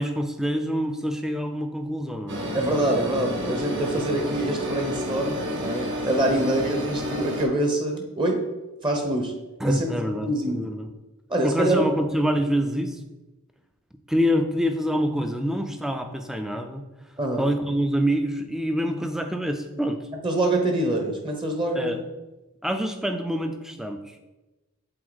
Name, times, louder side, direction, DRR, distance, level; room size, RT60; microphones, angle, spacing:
voice 1, 0.0-2.4 9.6-10.9 11.4-13.0 14.1-16.8 17.4-20.0 21.7-22.0 22.6-24.2, equal, ahead, 6 dB, 0.4 m, -26 dB
sound 1, 2.3-7.4, left 1 dB, 55° right, 1.4 m, -30 dB
voice 2, 2.5-8.4 8.8-9.3 9.6-9.9 10.2-10.7 11.3-11.8 17.2-17.5 20.2-22.0, right 1 dB, 20° right, 2 dB, 0.8 m, -25 dB
7.7 x 4.1 x 4.0 m, 1.1 s
head